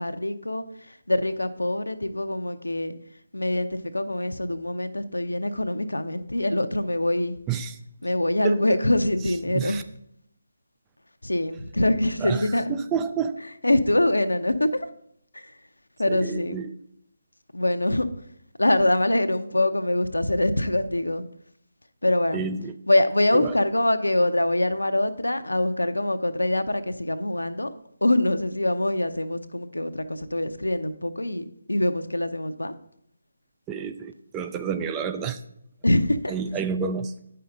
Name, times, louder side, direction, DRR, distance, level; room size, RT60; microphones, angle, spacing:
voice 1, 0.0-3.0 3.3-7.4 8.0-9.8 11.2-12.8 13.6-14.9 15.3-15.5 16.0-16.6 17.5-18.1 18.6-21.2 22.0-22.4 22.9-27.7 28.0-32.7 35.8-36.3, left 1 dB, 85° left, 10 dB, 0.7 m, -24 dB
voice 2, 12.7-13.4 16.1-16.7 22.3-22.7 23.3-23.6 33.7-35.4 36.3-37.1, right 6 dB, 15° right, 8 dB, 0.4 m, -29 dB
9.3 x 5.6 x 3.8 m, 0.73 s
figure-of-eight pair, 155°, 0 cm